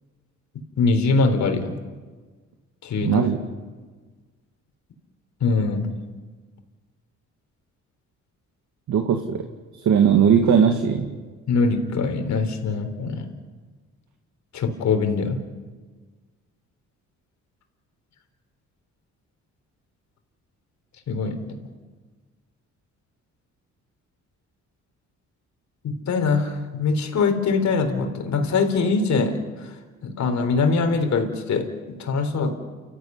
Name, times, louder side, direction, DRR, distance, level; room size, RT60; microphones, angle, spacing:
voice 1, 0.8-1.7 2.8-3.2 5.4-5.9 11.5-13.3 14.5-15.4 21.1-21.4 25.8-29.7 30.0-32.5, left 4 dB, 65° left, 6 dB, 4.2 m, -23 dB
voice 2, 3.0-3.4 8.9-9.4 9.7-11.1, right 7 dB, 70° right, 5 dB, 2.1 m, -19 dB
29.5 x 14.5 x 9.5 m, 1.4 s
cardioid pair, 90°, 30 cm